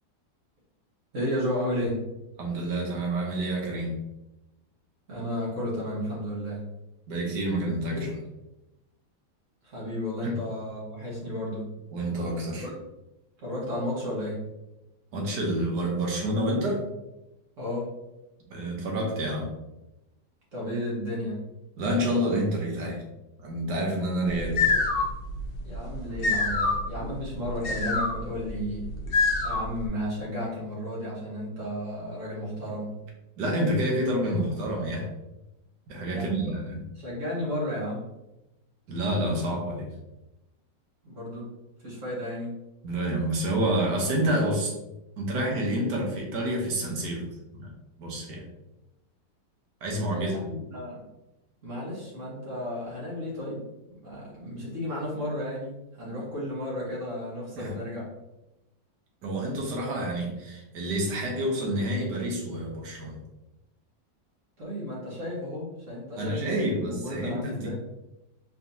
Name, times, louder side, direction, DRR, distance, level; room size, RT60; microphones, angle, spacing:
voice 1, 1.1-2.0 5.1-6.6 7.9-8.1 9.6-11.7 12.6-12.9 13.4-14.4 17.6-17.9 20.5-21.4 25.6-28.9 29.4-32.9 36.1-36.6 36.9-38.0 41.0-41.5 41.8-42.5 50.1-51.0 51.6-53.6 54.0-58.1 64.6-67.8, left 1 dB, 45° right, -6 dB, 1.7 m, -33 dB
voice 2, 2.4-4.0 7.1-8.1 10.2-10.4 11.9-12.7 15.1-16.9 18.5-19.5 21.8-23.0 23.4-24.8 33.4-35.1 35.9-36.8 38.9-39.9 42.8-44.7 45.2-47.3 47.5-47.7 48.0-48.4 49.8-50.4 57.5-57.7 59.2-63.2 66.2-67.8, right 1 dB, 70° right, -1 dB, 1.5 m, -28 dB
sound 1, 24.3-29.9, left 3 dB, 50° left, 0.7 m, -27 dB
4.4 x 3.3 x 2.7 m, 0.96 s
omnidirectional pair, 1.9 m